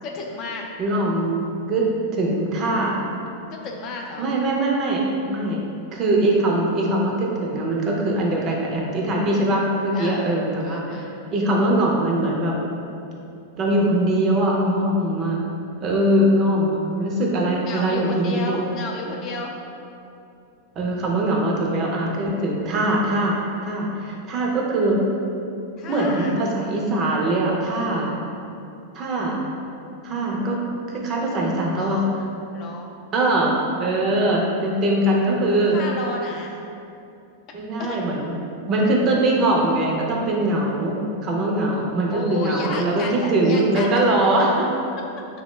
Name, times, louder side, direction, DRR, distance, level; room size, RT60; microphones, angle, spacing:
voice 1, 0.0-0.7 3.5-4.3 9.9-10.2 10.6-11.1 17.7-19.5 25.8-26.3 31.2-31.3 31.7-32.1 32.5-32.9 35.7-36.6 37.8-38.0 41.7-44.0, left 3 dB, 40° left, 1 dB, 0.3 m, -32 dB
voice 2, 0.8-3.0 4.2-5.6 5.9-10.8 11.3-12.6 13.6-15.4 15.8-18.6 20.8-23.4 23.6-25.0 25.9-28.1 28.9-29.4 30.0-30.6 30.9-32.0 33.1-35.8 37.5-38.3 38.7-44.7, right 1 dB, 35° right, -2 dB, 0.5 m, -22 dB
3.0 x 2.1 x 3.1 m, 2.6 s
supercardioid pair, 135°, 0 cm